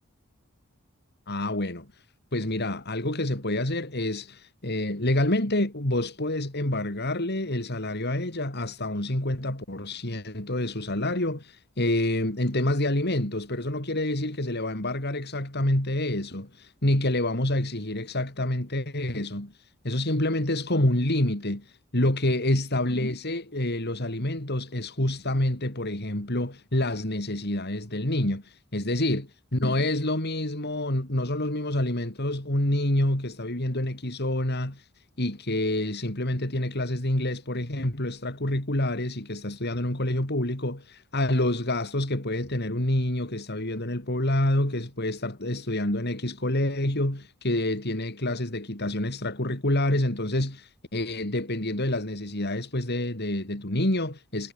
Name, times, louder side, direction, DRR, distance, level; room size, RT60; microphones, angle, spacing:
voice 1, 1.3-1.9 2.3-19.5 19.8-29.3 29.5-34.9 35.2-54.5, left 1 dB, 50° left, 3.9 m, -27 dB
head